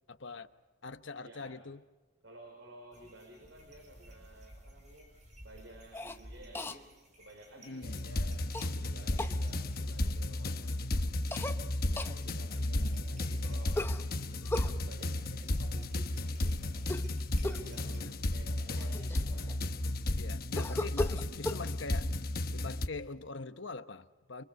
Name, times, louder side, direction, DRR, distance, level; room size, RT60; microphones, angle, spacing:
voice 1, 0.1-0.5 0.8-1.8 7.6-8.0 12.6-13.1 18.0-18.2 20.2-22.1 22.5-24.4, left 3 dB, 70° left, 1.0 m, -43 dB
voice 2, 1.2-1.6 2.2-5.1 5.4-10.9 11.7-16.9 17.4-19.6, right 1 dB, 65° right, 4.5 m, -54 dB
sound 1, 2.9-18.0, right 1 dB, 35° right, 6.3 m, -58 dB
Cough, 5.9-6.2 6.5-6.8 8.5-8.7 9.2-9.4 11.3-11.6 12.0-12.2 13.7-14.7 16.8-17.1 17.4-17.7 18.4-18.5 18.7-19.8 20.6-21.6, left 1 dB, 10° left, 0.8 m, -36 dB
sound 2, 7.8-22.9, left 1 dB, 50° left, 1.0 m, -33 dB
29.5 x 23.5 x 5.3 m
head